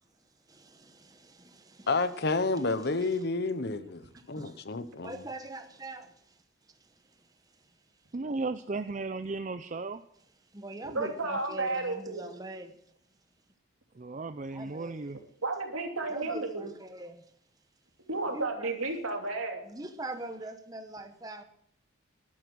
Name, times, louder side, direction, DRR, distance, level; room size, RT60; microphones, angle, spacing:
voice 1, 0.5-1.9 2.6-2.7 3.0-3.1 4.1-4.6 5.0-6.4 6.8-7.3 7.5-7.6 10.5-12.8 14.5-15.0 16.1-17.2 18.3-18.7 19.6-21.4, right 2 dB, 15° right, 1.0 m, -43 dB
voice 2, 1.9-5.2, left 3 dB, 50° left, 0.8 m, -30 dB
voice 3, 8.1-10.0 14.0-15.2, right 3 dB, 35° right, 0.5 m, -35 dB
voice 4, 10.8-12.3 15.4-16.7 18.1-19.7, right 3 dB, 80° right, 3.0 m, -32 dB
12.5 x 12.0 x 6.2 m
head